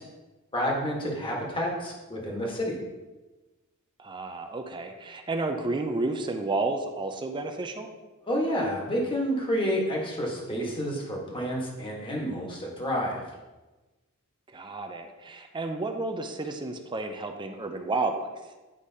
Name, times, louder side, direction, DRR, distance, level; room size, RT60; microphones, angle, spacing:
voice 1, 0.5-2.8 8.3-13.2, equal, 25° left, -2 dB, 1.3 m, -29 dB
voice 2, 4.0-7.9 14.5-18.3, right 3 dB, 20° right, 5 dB, 0.5 m, -31 dB
9.9 x 4.9 x 2.7 m, 1.2 s
head